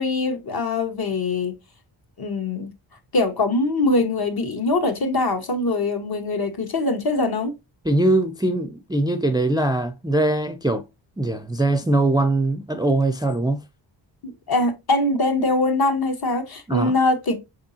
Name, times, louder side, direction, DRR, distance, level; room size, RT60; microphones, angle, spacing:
voice 1, 0.0-1.5 2.2-2.7 3.1-7.5 14.2-17.4, left 2 dB, 50° left, 1.3 m, -22 dB
voice 2, 7.8-10.8 11.2-13.6 16.7-16.9, right 2 dB, 10° right, 0.4 m, -21 dB
4.9 x 3.6 x 2.7 m
cardioid pair, 65°, 47 cm